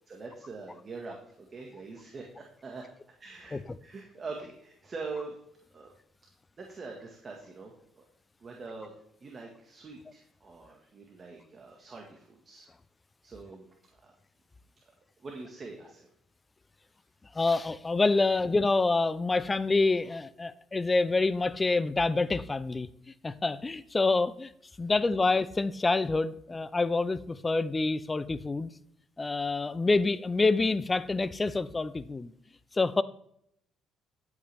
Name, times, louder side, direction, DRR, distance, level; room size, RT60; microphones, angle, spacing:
voice 1, 0.1-2.8 3.2-3.6 3.8-5.4 5.7-5.9 6.6-8.0 8.4-9.0 9.2-12.7 13.2-13.7 14.0-14.1 15.2-16.1 24.8-24.9, right 3 dB, 35° right, 0 dB, 1.7 m, -43 dB
voice 2, 17.4-22.9 23.2-24.5 24.8-28.7 29.2-32.3 32.7-33.0, left 3 dB, 20° left, 16 dB, 0.5 m, -27 dB
11.0 x 8.2 x 3.5 m, 0.70 s
cardioid pair, 105°, 0 cm